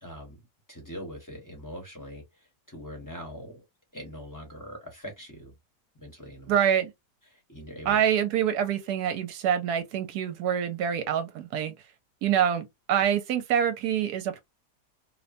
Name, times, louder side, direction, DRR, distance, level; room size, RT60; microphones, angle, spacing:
voice 1, 0.0-0.4 0.7-3.6 3.9-5.5 5.9-6.6 7.3-8.0 12.3-12.4, equal, 15° left, 0.7 m, -42 dB
voice 2, 6.5-6.9 7.9-11.7 12.2-14.4, right 9 dB, 75° right, 1.1 m, -26 dB
2.9 x 2.1 x 2.5 m
omnidirectional pair, 1.8 m